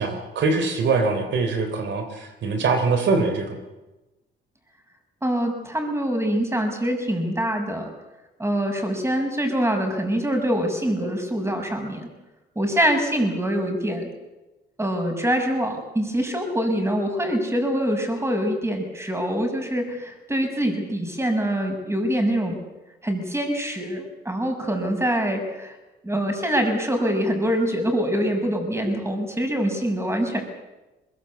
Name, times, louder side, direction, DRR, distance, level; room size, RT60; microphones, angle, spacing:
voice 1, 0.0-3.6, right 4 dB, 70° right, 6 dB, 3.4 m, -23 dB
voice 2, 5.2-7.9 8.4-12.1 12.6-14.1 14.8-22.6 23.0-25.7 26.0-30.4, equal, 15° right, 5 dB, 6.3 m, -24 dB
21.5 x 21.5 x 8.5 m, 1.1 s
cardioid pair, 90°, 20 cm